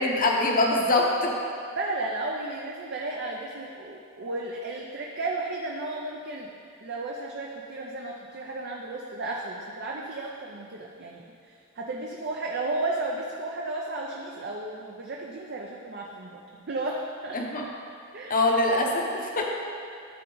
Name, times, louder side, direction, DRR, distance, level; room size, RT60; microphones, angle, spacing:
voice 1, 0.0-1.3 17.3-17.6 18.3-19.4, left 2 dB, 40° left, 0 dB, 0.9 m, -23 dB
voice 2, 1.8-6.5 6.8-16.4 16.7-17.4 18.1-18.4, right 2 dB, 50° right, -2 dB, 0.6 m, -33 dB
12.5 x 4.5 x 3.9 m, 2.3 s
head